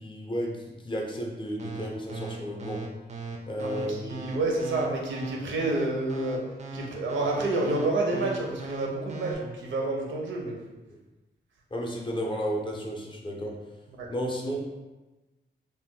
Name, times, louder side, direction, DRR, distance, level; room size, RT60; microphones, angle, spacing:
voice 1, 0.0-2.9 3.5-4.2 10.9-11.0 11.7-13.6 14.1-14.6, equal, 25° left, -1 dB, 0.4 m, -33 dB
sound 1, 1.6-9.3, right 3 dB, 40° right, 0.4 m, -38 dB
voice 2, 3.6-6.4 6.7-10.6 14.0-14.1, right 2 dB, 85° right, -1 dB, 0.6 m, -29 dB
2.5 x 2.1 x 3.6 m, 1.1 s
wide cardioid pair, 140°, 19 cm